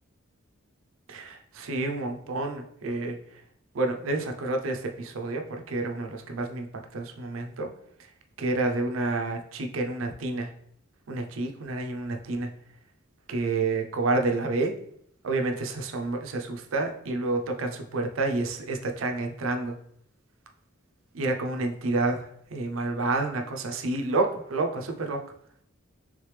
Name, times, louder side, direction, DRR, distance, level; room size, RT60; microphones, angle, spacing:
voice 1, 1.1-3.2 3.7-6.7 6.9-7.7 8.4-10.5 11.1-12.5 13.3-14.7 15.2-19.7 21.1-25.2, right 2 dB, 75° right, 4 dB, 0.5 m, -29 dB
3.5 x 3.3 x 3.2 m, 0.70 s
head